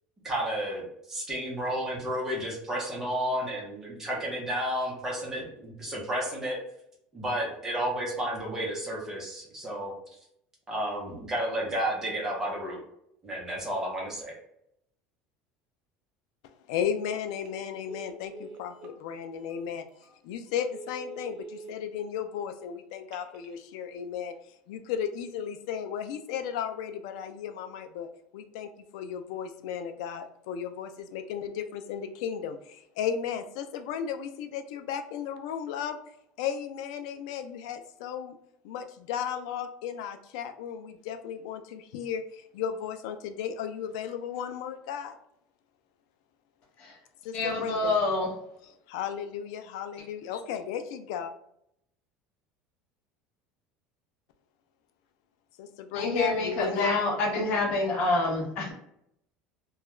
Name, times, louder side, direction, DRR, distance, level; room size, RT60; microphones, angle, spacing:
voice 1, 0.2-6.6 7.1-9.9 10.7-12.8 13.2-14.3, right 1 dB, 15° right, -3 dB, 0.8 m, -32 dB
voice 2, 16.4-19.8 20.2-24.3 24.7-36.0 36.4-38.4 38.6-45.2 47.2-48.0 48.9-51.3 55.6-57.0, left 8 dB, 85° left, 8 dB, 0.3 m, -35 dB
Telephone, 17.3-17.6 17.9-19.0 19.5-19.6 20.0-20.1 20.6-21.7 22.9-23.5, right 3 dB, 45° right, 0.5 m, -45 dB
voice 3, 47.3-48.3 55.9-58.7, left 2 dB, 45° left, -3 dB, 0.8 m, -27 dB
2.3 x 2.2 x 3.0 m, 0.74 s
cardioid pair, 160°, 3 cm